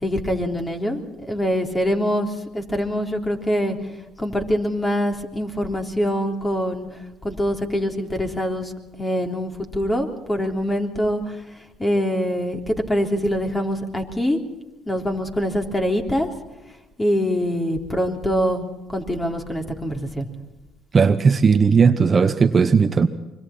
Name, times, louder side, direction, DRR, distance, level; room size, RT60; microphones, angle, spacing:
voice 1, 0.0-3.8 4.2-6.9 7.2-8.7 9.0-11.4 11.8-14.4 14.9-16.3 17.0-20.3, equal, 15° left, 3 dB, 3.6 m, -24 dB
voice 2, 20.9-23.1, right 5 dB, 35° right, 9 dB, 1.0 m, -16 dB
25.0 x 23.5 x 4.4 m, 1.1 s
supercardioid pair, 90°, 0 cm